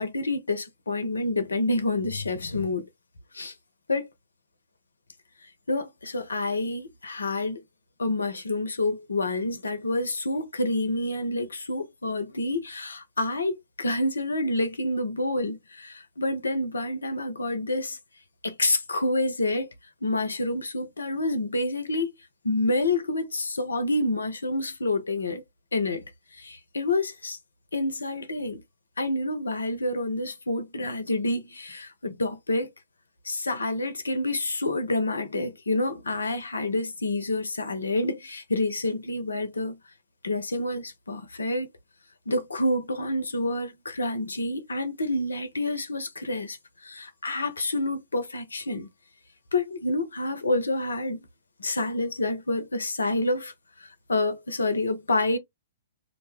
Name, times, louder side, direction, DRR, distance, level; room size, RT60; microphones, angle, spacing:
voice 1, 0.0-2.9 3.3-3.5 3.9-4.1 5.7-7.6 8.0-18.0 18.4-19.7 20.0-22.1 22.4-25.4 25.7-26.0 26.3-27.4 27.7-28.6 29.0-32.7 33.2-39.8 40.2-41.7 42.3-46.6 46.8-48.9 49.5-51.2 51.6-53.5 53.8-55.4, left 2 dB, 85° left, 0.7 m, -28 dB
2.6 x 2.1 x 3.2 m
figure-of-eight pair, 120°, 0 cm